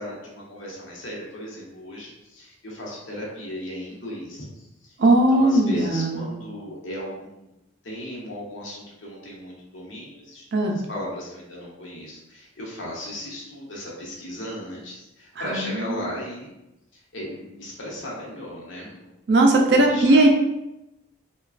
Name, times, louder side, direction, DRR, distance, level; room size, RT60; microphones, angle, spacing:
voice 1, 0.0-4.9 5.3-7.5 7.8-16.5 16.9-19.1 19.7-20.3, left 1 dB, 80° left, -4 dB, 0.8 m, -36 dB
voice 2, 5.0-6.4 10.5-10.8 15.4-15.7 19.3-20.3, right 2 dB, 60° right, 2 dB, 0.4 m, -18 dB
3.0 x 2.2 x 2.4 m, 0.91 s
head